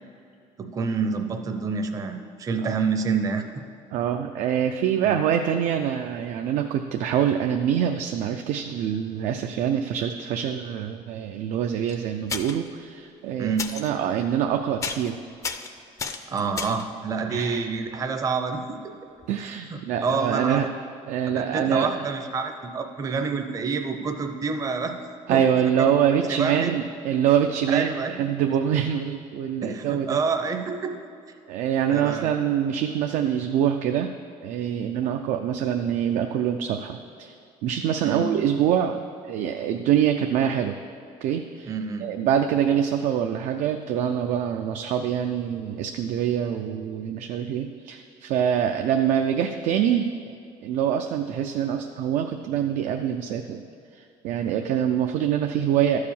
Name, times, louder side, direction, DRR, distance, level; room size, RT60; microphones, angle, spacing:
voice 1, 0.6-3.4 5.0-5.2 13.4-13.7 16.3-18.9 19.7-20.7 21.3-25.0 25.3-25.9 26.3-26.8 27.7-28.1 29.6-31.0 31.9-32.3 38.0-38.3 41.6-42.1, right 5 dB, 25° right, 6 dB, 0.6 m, -28 dB
voice 2, 3.9-15.2 17.3-17.7 19.3-20.7 21.1-22.1 25.3-30.2 31.5-34.1 34.4-37.4 37.6-40.7 41.2-41.7 42.0-50.4 50.6-53.6 53.9-56.0, right 9 dB, 75° right, 5 dB, 0.5 m, -25 dB
sound 1, 11.9-12.0 12.3-12.7 13.6-13.9 14.3-14.5 14.8-15.1 15.4-16.9 19.2-19.3 19.5-19.6, left 5 dB, 25° left, 0.5 m, -32 dB
12.0 x 4.8 x 7.1 m, 2.5 s
cardioid pair, 160°, 13 cm